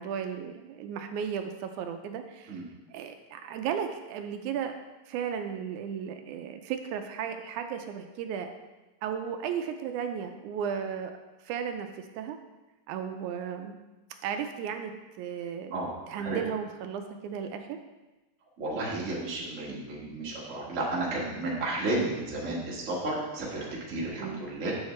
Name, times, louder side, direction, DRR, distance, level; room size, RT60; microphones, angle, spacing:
voice 1, 0.0-2.6 2.9-4.8 5.1-8.5 9.0-11.1 11.5-12.4 12.9-13.8 14.2-14.9 15.2-15.8 16.1-17.8 24.2-24.4, right 7 dB, 85° right, 6 dB, 2.0 m, -35 dB
voice 2, 18.6-24.8, right 2 dB, 30° right, -5 dB, 1.5 m, -32 dB
7.9 x 6.4 x 3.1 m, 1.1 s
omnidirectional pair, 3.4 m